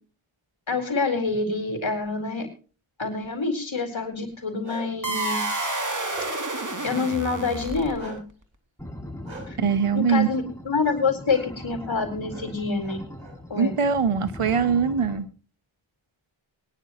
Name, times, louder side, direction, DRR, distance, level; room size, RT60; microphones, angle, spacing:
voice 1, 0.7-2.5 3.0-5.7 6.8-8.2 9.5-9.6 9.9-13.0 13.5-13.7, left 4 dB, 65° left, 3 dB, 4.5 m, -27 dB
Bark, 4.3-5.1 5.6-6.6 8.0-8.2 9.2-9.4 10.8-11.0 11.3-11.4 12.3-12.4 12.8-13.7, right 2 dB, 65° right, 7.6 m, -42 dB
sound 1, 5.0-8.2, right 2 dB, 35° right, 2.8 m, -29 dB
sound 2, 8.8-15.2, left 1 dB, 5° left, 5.8 m, -40 dB
voice 2, 9.6-10.3 13.6-15.3, right 6 dB, 90° right, 10 dB, 1.3 m, -22 dB
23.0 x 10.5 x 3.1 m, 0.38 s
cardioid pair, 45°, 50 cm